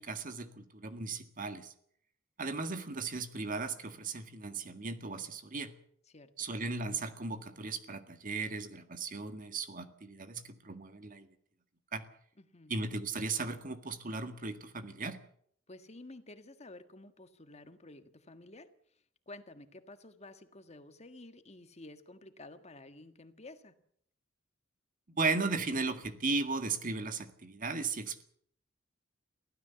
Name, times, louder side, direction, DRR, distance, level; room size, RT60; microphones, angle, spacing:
voice 1, 0.0-1.7 2.4-5.8 6.4-11.3 11.9-12.1 12.7-15.2 25.1-28.2, right 3 dB, 45° right, 9 dB, 1.8 m, -36 dB
voice 2, 6.1-6.5 12.4-12.7 15.7-23.7, left 2 dB, 35° left, 9 dB, 1.7 m, -52 dB
23.5 x 16.0 x 7.0 m, 0.65 s
head